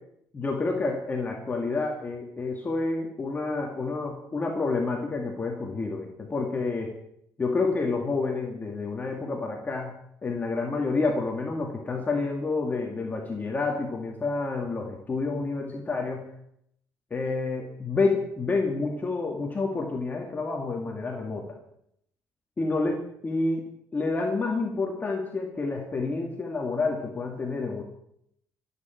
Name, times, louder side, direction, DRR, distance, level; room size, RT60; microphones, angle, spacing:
voice 1, 0.3-7.0 7.4-10.0 10.2-16.3 17.1-21.6 22.6-27.8, left 3 dB, 30° left, 0 dB, 2.5 m, -29 dB
27.0 x 9.6 x 4.6 m, 0.74 s
cardioid pair, 90°, 6 cm